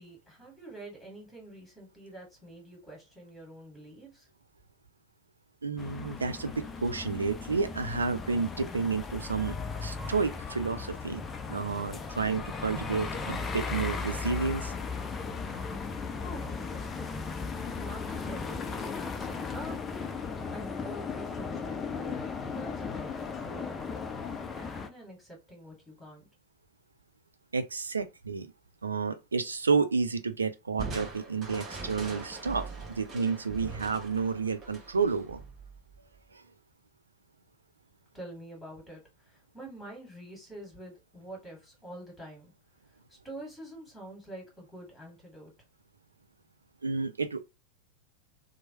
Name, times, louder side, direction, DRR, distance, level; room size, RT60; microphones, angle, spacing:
voice 1, 0.0-4.3 16.2-17.2 17.7-19.8 20.5-26.3 38.1-42.5 43.1-45.5, right 1 dB, 5° left, 1.7 m, -46 dB
voice 2, 5.6-11.2 11.5-14.7 27.5-28.5 28.8-35.4 36.3-36.4 46.8-47.4, right 4 dB, 75° right, 0.4 m, -30 dB
sound 1, 5.8-24.9, left 5 dB, 20° left, 0.4 m, -36 dB
Crushing, 30.8-36.2, right 3 dB, 25° right, 0.9 m, -42 dB
3.0 x 2.0 x 2.9 m
figure-of-eight pair, 90°, 0 cm